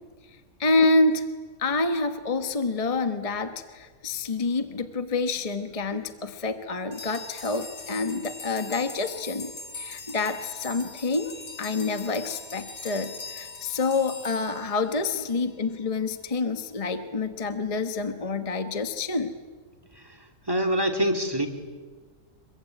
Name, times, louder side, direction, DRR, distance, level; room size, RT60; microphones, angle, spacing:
voice 1, 0.6-1.2 1.6-11.3 11.6-19.3, left 3 dB, 25° left, 8 dB, 1.2 m, -27 dB
sound 1, 6.9-15.4, left 4 dB, 65° left, 2.4 m, -41 dB
voice 2, 20.5-21.5, equal, 15° right, 4 dB, 2.7 m, -24 dB
26.0 x 23.0 x 9.2 m, 1.5 s
omnidirectional pair, 1.6 m